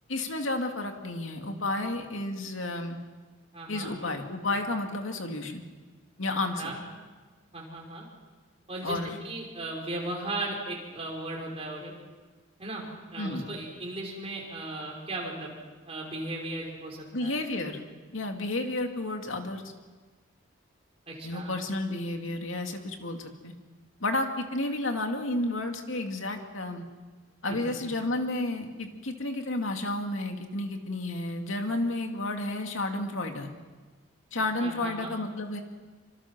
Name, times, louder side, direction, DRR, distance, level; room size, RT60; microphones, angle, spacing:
voice 1, 0.1-3.0 3.7-5.6 6.2-6.7 8.8-9.2 13.2-13.5 17.1-17.8 18.1-19.6 21.2-23.5 24.0-26.8 27.4-33.5 34.3-35.6, left 2 dB, 75° left, 4 dB, 2.5 m, -31 dB
voice 2, 3.5-3.9 6.6-6.8 7.5-8.1 8.7-9.0 9.2-11.9 12.6-12.9 13.1-15.5 15.9-17.3 21.1-21.5 27.5-27.6 34.6-35.1, right 2 dB, 30° right, -2 dB, 5.8 m, -36 dB
27.0 x 25.5 x 6.1 m, 1.3 s
head